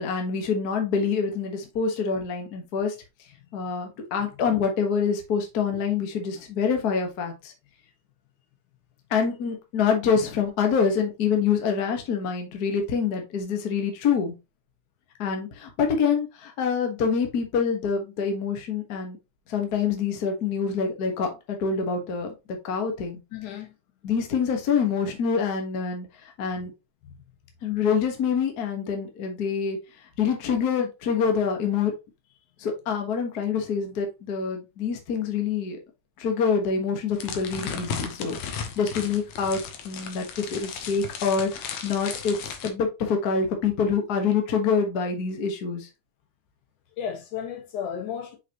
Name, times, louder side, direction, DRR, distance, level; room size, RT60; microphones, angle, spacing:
voice 1, 0.0-2.9 3.5-7.5 9.1-14.3 15.2-19.2 19.5-22.3 22.6-23.2 24.0-26.7 27.6-29.8 30.2-31.9 32.6-35.8 36.2-42.4 42.6-45.9, left 6 dB, 45° left, 1.3 m, -26 dB
voice 2, 23.3-23.7 27.0-27.1 47.0-48.4, left 8 dB, 85° left, 2.9 m, -33 dB
sound 1, 37.1-42.7, left 6 dB, 65° left, 2.0 m, -35 dB
5.9 x 5.7 x 2.9 m
omnidirectional pair, 3.4 m